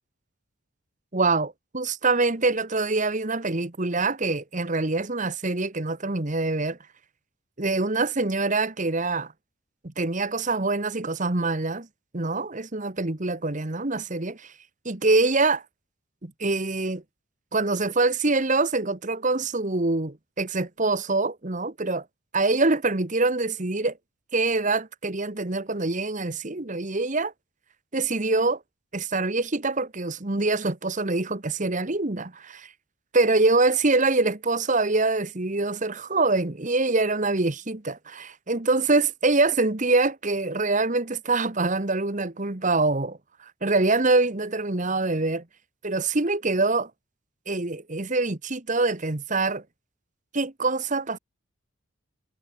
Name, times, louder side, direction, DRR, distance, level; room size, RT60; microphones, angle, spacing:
voice 1, 1.1-6.8 7.6-9.3 9.8-11.9 12.1-14.5 14.8-15.6 16.2-17.0 17.5-22.0 22.3-23.9 24.3-27.3 27.9-28.6 28.9-32.7 33.1-43.2 43.6-45.4 45.8-46.9 47.5-49.6 50.3-51.2, right 3 dB, 35° right, 1.2 m, -25 dB
head